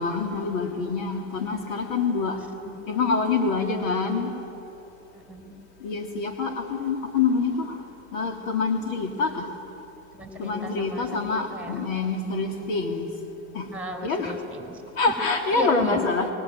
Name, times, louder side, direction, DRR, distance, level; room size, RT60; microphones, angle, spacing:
voice 1, 0.0-2.4 2.9-4.3 5.8-7.8 8.1-9.5 10.4-13.1 13.5-13.7 14.0-14.4 15.0-16.3, left 4 dB, 70° left, 3 dB, 3.2 m, -26 dB
voice 2, 5.1-5.5 10.1-11.8 13.7-14.8 15.5-16.0, equal, 5° right, 3 dB, 4.9 m, -34 dB
24.5 x 21.0 x 9.1 m, 2.9 s
hypercardioid pair, 110°, 42 cm